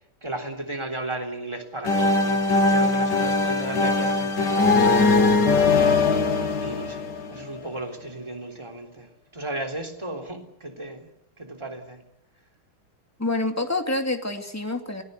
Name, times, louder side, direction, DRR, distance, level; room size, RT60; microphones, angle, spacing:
voice 1, 0.2-2.4 2.7-4.9 6.6-9.1 9.3-12.0, right 1 dB, 15° right, 4 dB, 3.5 m, -34 dB
sound 1, 1.8-7.6, left 3 dB, 55° left, 2.4 m, -21 dB
voice 2, 13.2-15.0, left 2 dB, 5° left, 5 dB, 2.3 m, -27 dB
28.0 x 19.5 x 8.2 m, 0.76 s
omnidirectional pair, 2.3 m